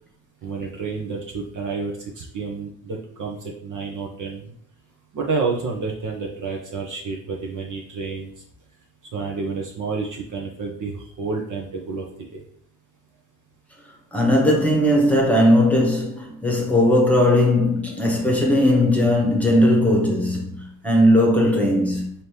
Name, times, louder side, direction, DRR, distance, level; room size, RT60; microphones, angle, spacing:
voice 1, 0.4-4.5 5.1-8.3 9.1-12.1 12.3-12.4, right 4 dB, 40° right, 0.9 m, -29 dB
voice 2, 14.1-22.1, left 1 dB, 5° left, 1.2 m, -18 dB
4.1 x 2.8 x 3.3 m
supercardioid pair, 80°, 47 cm